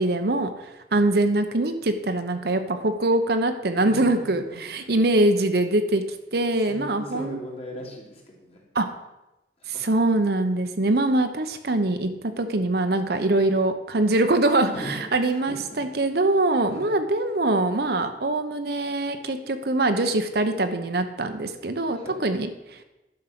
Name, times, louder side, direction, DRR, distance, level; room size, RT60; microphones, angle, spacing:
voice 1, 0.0-6.0 6.3-7.4 8.7-8.9 9.8-14.7 15.1-22.8, right 2 dB, 60° right, 8 dB, 0.9 m, -23 dB
voice 2, 3.8-4.3 4.8-4.9 6.6-8.9 9.6-9.9 14.7-15.8 16.7-17.0 21.9-22.2, equal, 35° left, -2 dB, 2.7 m, -39 dB
10.5 x 6.5 x 5.9 m, 0.98 s
head